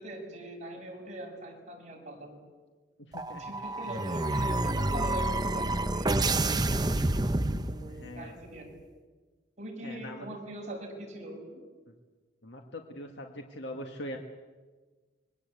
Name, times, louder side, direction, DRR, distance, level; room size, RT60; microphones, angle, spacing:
voice 1, 0.0-2.4 3.4-7.1 7.7-8.7 9.6-11.6, right 1 dB, 40° right, 0 dB, 6.7 m, -42 dB
voice 2, 3.0-3.5 7.9-8.3 9.8-10.3 11.9-12.0 12.4-14.2, left 1 dB, 75° left, 3 dB, 1.9 m, -42 dB
sound 1, 3.1-8.1, right 2 dB, 20° right, 0.9 m, -28 dB
26.0 x 22.0 x 8.4 m, 1.4 s
head